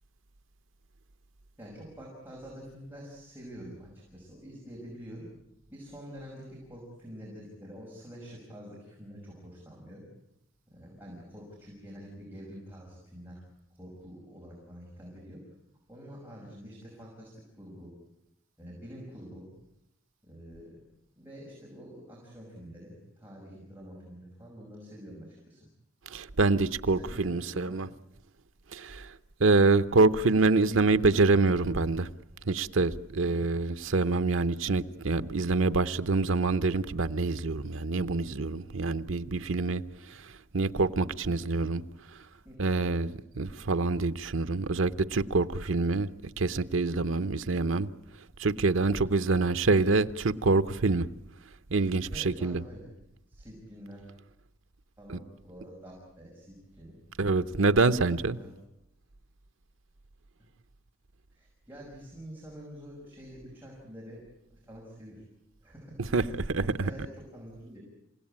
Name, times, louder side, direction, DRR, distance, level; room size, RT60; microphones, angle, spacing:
voice 1, 1.6-5.3 5.7-10.1 10.7-13.4 13.8-15.4 15.9-17.3 17.6-17.9 18.6-19.5 20.2-20.8 21.2-25.7 26.9-27.8 42.4-42.6 43.6-43.7 48.8-49.0 52.1-52.9 53.3-54.0 55.0-57.0 58.1-58.5 61.3-64.2 64.5-65.2 65.6-66.0 66.2-67.8, equal, 10° right, 5.9 m, -47 dB
voice 2, 26.1-27.9 28.7-32.1 32.4-41.8 42.6-46.1 46.4-47.9 48.4-51.1 51.7-52.6 55.1-55.2 57.2-58.4 66.1-66.9, right 3 dB, 80° right, 0.8 m, -26 dB
28.5 x 17.0 x 8.8 m
head